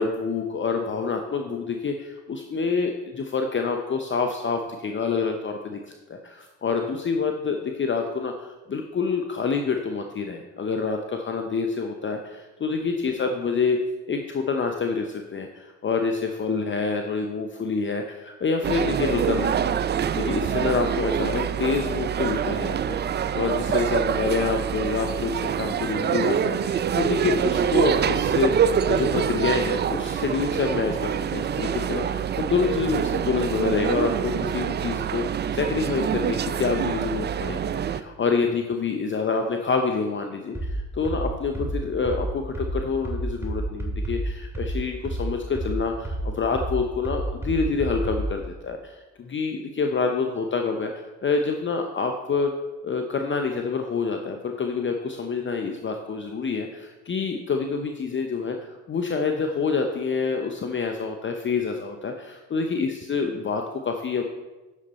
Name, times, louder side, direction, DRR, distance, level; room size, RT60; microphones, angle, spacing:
voice 1, 0.0-13.8 14.1-19.8 20.1-52.5 52.8-58.6 58.9-64.3, left 4 dB, 30° left, 4 dB, 0.7 m, -27 dB
sound 1, 18.6-38.0, right 8 dB, 30° right, 0.4 m, -25 dB
sound 2, 40.5-48.4, right 1 dB, 5° right, 2.2 m, -29 dB
8.3 x 6.6 x 4.2 m, 1.2 s
supercardioid pair, 65°, 38 cm